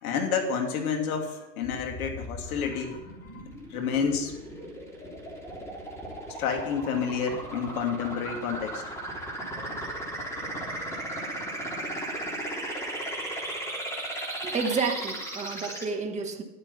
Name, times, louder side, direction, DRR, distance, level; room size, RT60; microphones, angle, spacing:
voice 1, 0.0-3.4 3.7-4.4 6.4-8.8, left 6 dB, 60° left, 2.8 m, -29 dB
sound 1, 1.6-15.8, right 1 dB, 5° left, 3.5 m, -36 dB
voice 2, 14.4-16.4, right 4 dB, 15° right, 1.5 m, -30 dB
11.0 x 10.0 x 5.6 m
hypercardioid pair, 120°, 48 cm